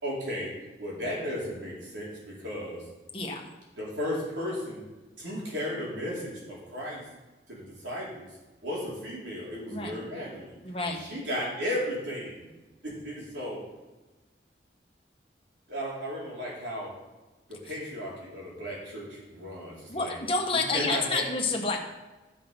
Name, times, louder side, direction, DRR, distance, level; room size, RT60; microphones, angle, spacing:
voice 1, 0.0-2.8 3.8-4.8 5.2-7.0 7.5-8.3 8.6-10.5 10.8-12.5 12.8-13.6 15.7-17.0 17.5-20.2 20.5-21.3, equal, 90° right, -5 dB, 4.2 m, -35 dB
voice 2, 10.6-11.0 19.9-21.8, left 3 dB, 30° left, 0 dB, 1.4 m, -29 dB
14.0 x 6.2 x 5.4 m, 1.2 s
head